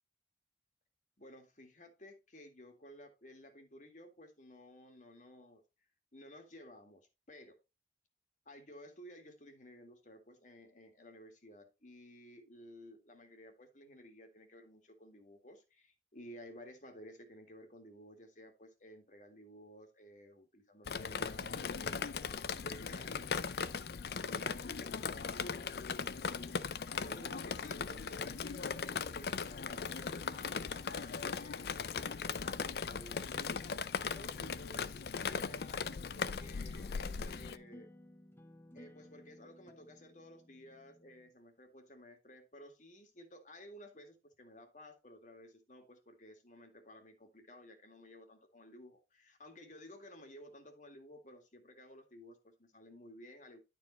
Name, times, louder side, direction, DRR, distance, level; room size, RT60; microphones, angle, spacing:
voice 1, 1.2-5.6 6.1-7.6 8.5-23.6 24.0-33.5 34.0-37.9 38.7-53.6, left 1 dB, 45° left, 2.0 m, -55 dB
Drip, 20.9-37.6, left 5 dB, 60° left, 0.5 m, -39 dB
sound 1, 36.3-41.3, left 1 dB, 15° left, 0.8 m, -57 dB
11.5 x 4.7 x 4.1 m
head